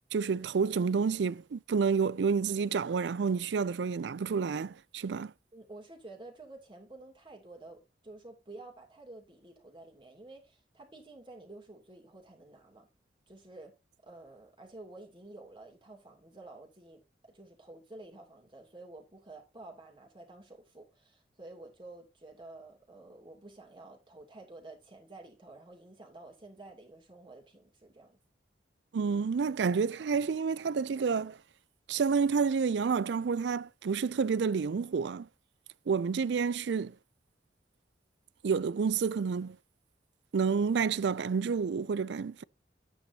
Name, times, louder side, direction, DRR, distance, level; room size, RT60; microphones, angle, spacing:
voice 1, 0.1-5.3 28.9-31.4 31.9-35.3 35.9-36.9 38.4-39.6 40.3-42.4, right 5 dB, 75° right, 0.4 m, -29 dB
voice 2, 5.5-12.9 13.3-13.7 14.0-28.2, right 2 dB, 25° right, 2.8 m, -51 dB
10.0 x 9.3 x 2.8 m
head